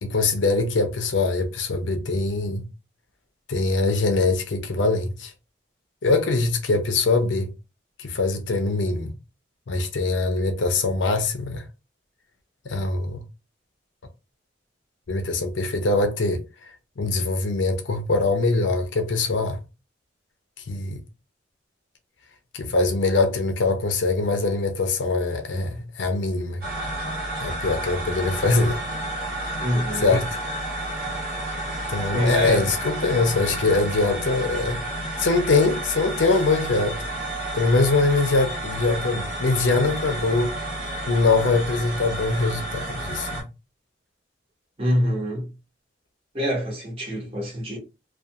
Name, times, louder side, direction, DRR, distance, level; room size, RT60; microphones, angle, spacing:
voice 1, 0.0-2.7 3.5-5.3 6.0-7.5 8.0-9.1 9.7-11.6 12.6-13.2 15.1-16.4 17.0-19.6 20.7-21.0 22.5-26.6 27.4-28.8 30.0-30.2 31.9-34.8 35.2-37.0 37.5-40.5 41.1-43.4, left 3 dB, 75° left, 0.6 m, -23 dB
sound 1, 26.6-43.4, right 1 dB, 55° right, 1.2 m, -31 dB
voice 2, 29.6-30.2 32.1-32.7 44.8-45.5 46.3-47.8, equal, 30° right, 1.0 m, -25 dB
2.4 x 2.4 x 2.7 m
head